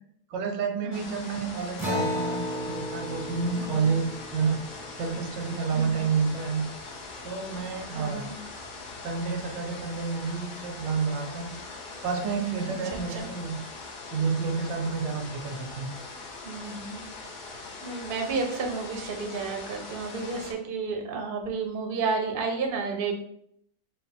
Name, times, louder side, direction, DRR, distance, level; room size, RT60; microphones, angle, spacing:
voice 1, 0.3-4.6 5.0-6.6 7.2-8.3 9.0-11.5 12.0-13.6 14.1-15.9, right 5 dB, 90° right, 5 dB, 1.4 m, -29 dB
voice 2, 0.8-1.2 3.6-4.0 5.7-6.1 7.9-8.4 12.9-13.3 16.4-17.1 17.8-23.1, right 4 dB, 60° right, 3 dB, 0.5 m, -32 dB
sound 1, 0.9-20.5, left 3 dB, 70° left, 1.4 m, -42 dB
Acoustic guitar, 1.8-6.7, left 1 dB, 5° right, 0.4 m, -35 dB
4.2 x 2.2 x 4.2 m, 0.70 s
omnidirectional pair, 1.9 m